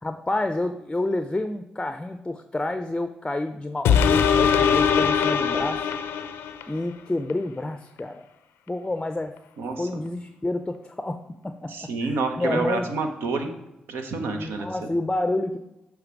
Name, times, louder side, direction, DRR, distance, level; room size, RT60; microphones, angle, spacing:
voice 1, 0.0-5.9 6.7-8.2 8.7-9.3 9.8-11.2 11.4-12.9 14.4-15.6, left 2 dB, 15° left, 9 dB, 0.5 m, -29 dB
sound 1, 3.8-6.8 7.3-7.4, left 7 dB, 80° left, 0.4 m, -21 dB
voice 2, 9.6-10.0 11.7-13.5 13.9-14.9, right 3 dB, 75° right, 5 dB, 0.8 m, -28 dB
8.0 x 3.5 x 4.7 m, 0.94 s
hypercardioid pair, 40°, 4 cm